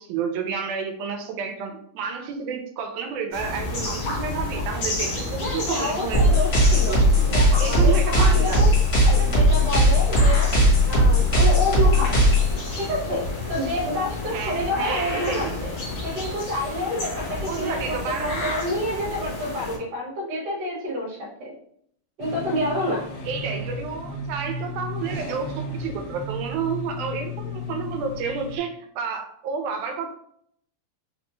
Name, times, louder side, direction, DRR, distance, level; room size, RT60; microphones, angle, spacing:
voice 1, 0.0-6.2 6.7-7.3 7.6-8.7 9.1-9.4 14.3-15.6 17.5-18.6 23.3-30.1, right 6 dB, 90° right, 5 dB, 2.0 m, -30 dB
sound 1, 3.3-19.8, left 2 dB, 60° left, 1.5 m, -31 dB
voice 2, 5.4-7.0 7.3-8.7 9.1-12.1 12.8-15.7 16.0-21.5 22.2-23.0, left 1 dB, 50° right, -4 dB, 1.2 m, -28 dB
sound 2, 6.1-12.5, equal, 45° left, 1.0 m, -18 dB
sound 3, 22.2-28.6, left 1 dB, 75° left, 1.4 m, -33 dB
5.1 x 2.1 x 3.0 m, 0.68 s
omnidirectional pair, 3.5 m